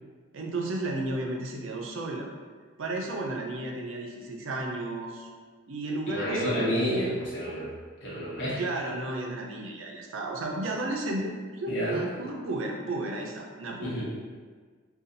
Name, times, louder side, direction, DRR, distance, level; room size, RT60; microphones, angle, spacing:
voice 1, 0.3-2.3 2.8-5.3 5.7-6.7 8.6-13.9, right 2 dB, 80° right, 0 dB, 0.5 m, -33 dB
voice 2, 6.1-7.7 8.0-8.6 11.7-12.1 13.8-14.1, equal, 65° left, -8 dB, 1.1 m, -29 dB
2.6 x 2.4 x 3.8 m, 1.5 s
head